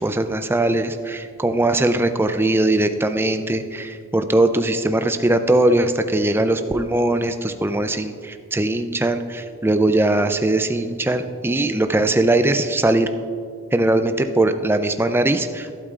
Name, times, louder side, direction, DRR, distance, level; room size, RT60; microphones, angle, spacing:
voice 1, 0.0-13.1 13.7-15.8, right 1 dB, 10° right, 8 dB, 0.3 m, -20 dB
12.0 x 12.0 x 2.4 m, 2.3 s
head